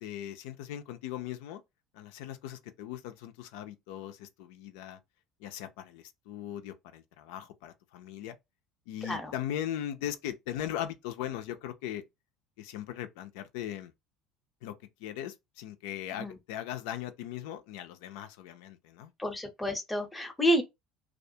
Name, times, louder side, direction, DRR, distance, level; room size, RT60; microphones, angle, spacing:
voice 1, 0.0-1.6 1.9-5.0 5.4-8.4 8.9-12.0 12.6-13.9 14.6-14.7 15.0-19.1, left 11 dB, 85° left, 0.4 m, -39 dB
voice 2, 19.2-20.6, equal, 10° left, 0.7 m, -29 dB
2.3 x 2.2 x 2.7 m
supercardioid pair, 105°, 0 cm